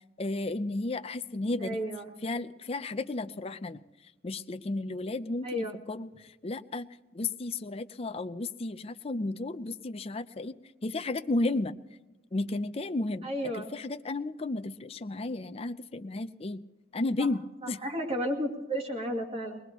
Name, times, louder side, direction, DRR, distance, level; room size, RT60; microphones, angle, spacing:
voice 1, 0.2-1.8 2.2-3.8 4.2-6.9 7.1-10.6 10.8-11.8 12.3-13.3 13.6-16.6 16.9-17.4 17.7-17.8, left 2 dB, 35° left, 10 dB, 0.5 m, -33 dB
voice 2, 1.6-2.1 5.4-5.8 13.2-13.7 17.2-17.3 17.6-19.6, equal, 35° right, 0 dB, 2.3 m, -33 dB
23.5 x 20.0 x 3.0 m, 1.1 s
head